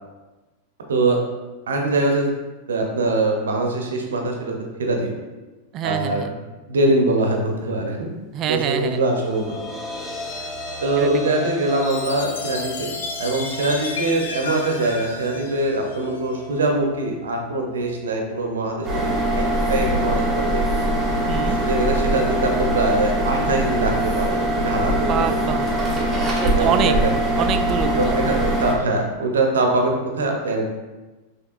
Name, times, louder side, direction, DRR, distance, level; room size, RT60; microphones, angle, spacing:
voice 1, 1.7-2.3 2.7-4.5 4.8-5.1 5.8-6.3 6.7-8.2 8.5-9.6 10.8-12.7 13.2-19.0 19.3-20.6 21.6-24.4 24.6-25.3 26.4-27.4 28.0-30.7, right 2 dB, 65° right, 2 dB, 0.7 m, -23 dB
voice 2, 5.7-6.3 8.3-9.0 11.0-11.5 21.3-21.6 24.9-25.7 26.4-26.9 27.4-28.2, right 8 dB, 35° right, 9 dB, 0.3 m, -25 dB
sound 1, 8.8-21.1, left 2 dB, 5° left, 0.7 m, -37 dB
Chime, 11.8-16.4, left 3 dB, 65° left, 0.6 m, -33 dB
sound 2, 18.8-28.7, right 1 dB, 10° right, 1.1 m, -22 dB
5.7 x 3.2 x 2.4 m, 1.2 s
figure-of-eight pair, 90°, 0 cm